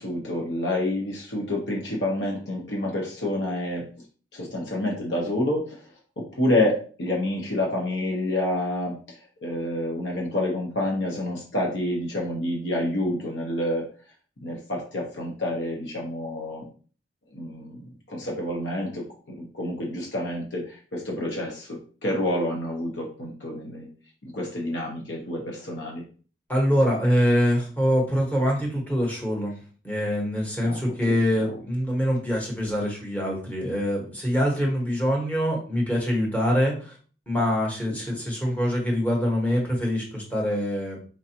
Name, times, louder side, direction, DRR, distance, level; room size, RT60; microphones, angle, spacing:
voice 1, 0.0-3.9 4.3-5.8 6.2-9.0 9.4-13.9 14.4-16.7 17.3-17.8 18.1-23.9 24.2-26.0 30.6-30.8 31.1-31.5, left 1 dB, 90° left, -1 dB, 0.9 m, -28 dB
voice 2, 26.5-29.6 29.8-37.0 37.3-41.0, equal, 10° left, -2 dB, 1.2 m, -24 dB
4.6 x 2.5 x 2.8 m, 0.40 s
head